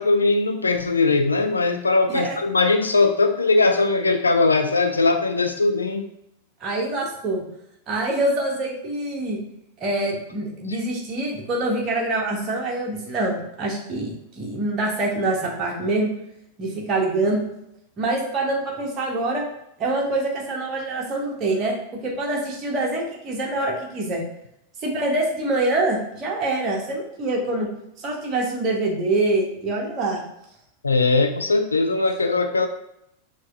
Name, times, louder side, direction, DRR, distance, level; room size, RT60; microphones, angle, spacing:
voice 1, 0.0-6.1 30.8-32.7, left 3 dB, 75° left, 6 dB, 0.4 m, -20 dB
voice 2, 2.1-2.4 6.6-7.4 7.9-9.4 9.8-16.1 16.6-17.4 18.0-19.4 19.8-24.2 24.8-27.7 28.0-30.2, right 2 dB, 30° right, -1 dB, 0.9 m, -25 dB
5.9 x 2.4 x 2.5 m, 0.79 s
figure-of-eight pair, 90°, 0 cm